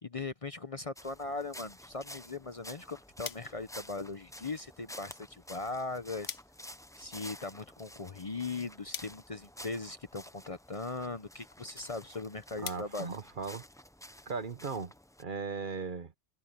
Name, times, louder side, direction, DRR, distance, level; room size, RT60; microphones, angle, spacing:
voice 1, 0.0-6.4 7.0-13.1, left 3 dB, 35° left, 0.8 m, -39 dB
sound 1, 1.0-15.2, left 1 dB, 5° left, 0.5 m, -51 dB
sound 2, 3.2-14.0, left 8 dB, 70° left, 1.1 m, -50 dB
voice 2, 12.6-13.6 14.3-14.9 15.2-16.1, right 5 dB, 50° right, 1.1 m, -37 dB
omnidirectional pair, 1.1 m